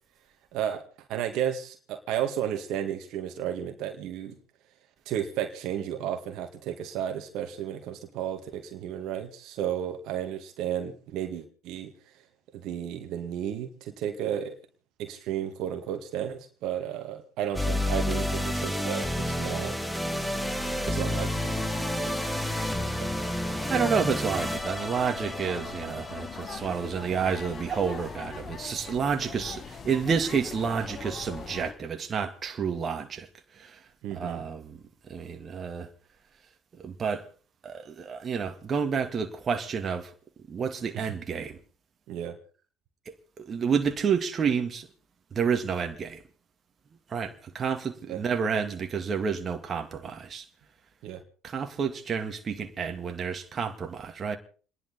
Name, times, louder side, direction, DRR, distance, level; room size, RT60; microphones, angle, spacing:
voice 1, 0.5-0.8 1.1-4.4 5.1-11.9 12.5-14.6 15.0-19.8 20.9-21.7 22.0-22.2 23.0-23.1 34.0-34.5 40.9-41.1 42.1-42.4 48.1-48.2 51.0-51.2, right 10 dB, 65° right, 2.0 m, -33 dB
sound 1, 17.6-27.9, left 1 dB, 5° left, 2.3 m, -30 dB
sound 2, 21.0-31.7, left 5 dB, 45° left, 2.1 m, -41 dB
voice 2, 23.7-33.3 33.6-33.8 34.1-34.8 35.1-35.9 36.8-37.3 37.6-40.1 40.5-41.5 43.4-44.9 45.3-46.2 47.1-50.5 51.4-54.4, right 6 dB, 40° right, 2.1 m, -30 dB
29.0 x 11.0 x 4.3 m
hypercardioid pair, 70°, 0 cm